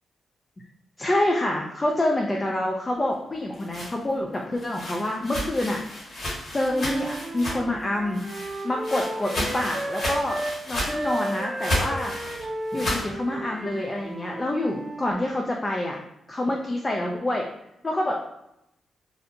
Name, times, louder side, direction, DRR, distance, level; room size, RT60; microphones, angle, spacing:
voice 1, 1.0-6.2 6.5-8.2 8.6-10.4 10.7-12.1 12.7-16.0 16.3-17.5 17.8-18.2, left 1 dB, 30° left, 0 dB, 0.4 m, -27 dB
sound 1, 3.3-7.8 8.1-13.1, left 1 dB, 60° left, 1.2 m, -32 dB
Wind instrument woodwind instrument, 6.6-10.6 10.9-15.1, right 1 dB, 35° right, 0.6 m, -33 dB
2.6 x 2.0 x 2.7 m, 0.83 s
supercardioid pair, 45°, 0 cm